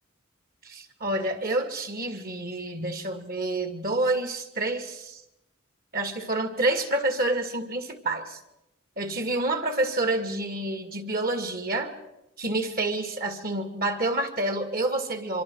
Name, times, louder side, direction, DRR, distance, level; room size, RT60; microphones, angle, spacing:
voice 1, 0.6-5.2 5.9-8.4 9.0-11.9 12.4-15.4, right 2 dB, 50° right, 8 dB, 2.2 m, -28 dB
25.5 x 24.5 x 4.8 m, 0.87 s
head